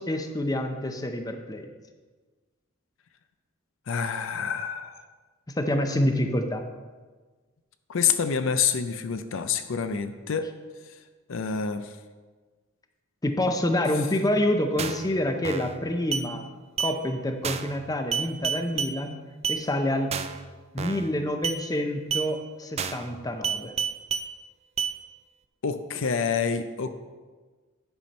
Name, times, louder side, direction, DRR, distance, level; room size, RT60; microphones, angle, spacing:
voice 1, 0.0-1.7 5.5-6.6 13.2-16.5 16.8-19.2 19.5-20.1 20.7-23.7, left 1 dB, 15° left, 5 dB, 0.6 m, -27 dB
voice 2, 3.9-5.0 7.9-10.5 11.3-11.9 25.6-27.0, left 6 dB, 65° left, 9 dB, 0.5 m, -27 dB
sound 1, 14.8-15.1 15.4-15.8 16.1-16.3 16.8-16.9 17.4-17.8 18.1-18.9 19.4-19.6 20.1-20.4 20.8-21.1 21.4-21.6 22.1-22.3 22.8-23.1 23.4-24.3 24.8-24.9, right 6 dB, 30° right, 0.4 m, -29 dB
10.5 x 4.3 x 5.3 m, 1.4 s
head